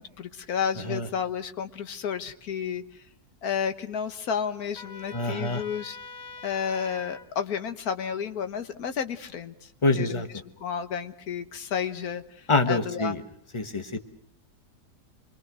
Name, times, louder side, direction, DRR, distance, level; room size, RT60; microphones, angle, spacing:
voice 1, 0.0-3.0 3.4-6.0 6.4-10.2 10.6-13.1, left 7 dB, 70° left, 10 dB, 1.7 m, -32 dB
Trumpet, 4.7-7.3, left 4 dB, 45° left, 1.9 m, -43 dB
voice 2, 5.1-5.6 9.8-10.3 12.5-13.2 13.5-14.0, left 2 dB, 20° left, 7 dB, 1.4 m, -25 dB
27.5 x 22.5 x 6.2 m, 0.64 s
omnidirectional pair, 1.7 m